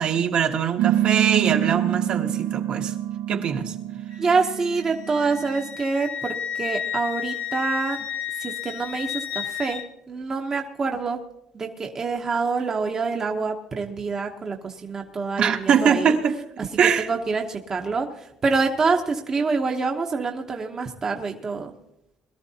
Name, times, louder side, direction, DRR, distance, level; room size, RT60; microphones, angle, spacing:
voice 1, 0.0-2.9 3.3-3.7 15.4-16.4 16.8-17.1, right 7 dB, 50° right, 1.1 m, -22 dB
sound 1, 0.8-5.7, right 13 dB, 85° right, 0.6 m, -26 dB
Wind instrument woodwind instrument, 4.1-9.9, left 9 dB, 55° left, 0.9 m, -32 dB
voice 2, 4.2-8.0 8.4-9.8 10.1-11.2 11.5-16.2 17.0-18.1 18.4-21.7, right 4 dB, 25° right, 0.9 m, -26 dB
21.5 x 13.0 x 2.8 m
cardioid pair, 155°, 2 cm